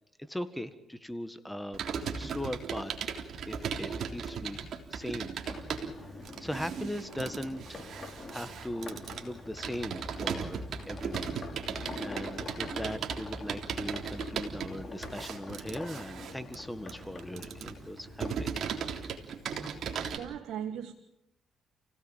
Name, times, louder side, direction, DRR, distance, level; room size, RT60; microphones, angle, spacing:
voice 1, 0.2-1.8 2.2-2.9 3.5-5.3 5.6-18.5, left 1 dB, 5° left, 1.7 m, -40 dB
Computer keyboard, 1.7-20.2, right 6 dB, 65° right, 3.5 m, -37 dB
sound 1, 5.5-18.6, left 2 dB, 25° left, 5.7 m, -46 dB
voice 2, 20.0-20.9, right 9 dB, 80° right, 1.6 m, -38 dB
30.0 x 17.5 x 7.4 m
cardioid pair, 90°, 0 cm